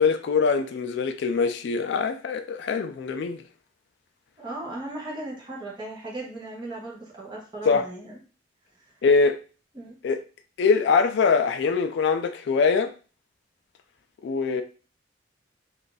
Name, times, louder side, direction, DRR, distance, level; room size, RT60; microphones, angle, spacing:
voice 1, 0.0-3.4 7.7-7.8 9.0-9.4 10.0-10.2 10.6-12.9 14.2-14.6, left 5 dB, 65° left, 0.3 m, -23 dB
voice 2, 4.4-8.2 8.8-8.9 9.7-10.0, right 2 dB, 25° right, 0.9 m, -37 dB
2.6 x 2.4 x 3.8 m
head